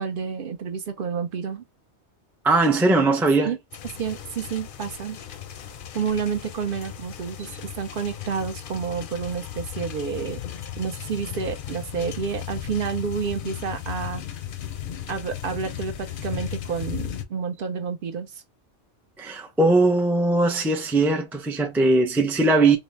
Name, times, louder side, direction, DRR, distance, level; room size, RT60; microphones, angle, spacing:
voice 1, 0.0-1.6 3.4-3.6 4.0-5.2 5.9-10.4 10.8-14.2 15.1-18.3, right 6 dB, 60° right, 0.7 m, -29 dB
voice 2, 2.4-3.5 7.4-7.5 19.2-22.8, right 2 dB, 5° right, 0.3 m, -20 dB
sound 1, 3.7-17.2, left 10 dB, 60° left, 0.6 m, -36 dB
3.8 x 2.1 x 3.2 m
omnidirectional pair, 1.1 m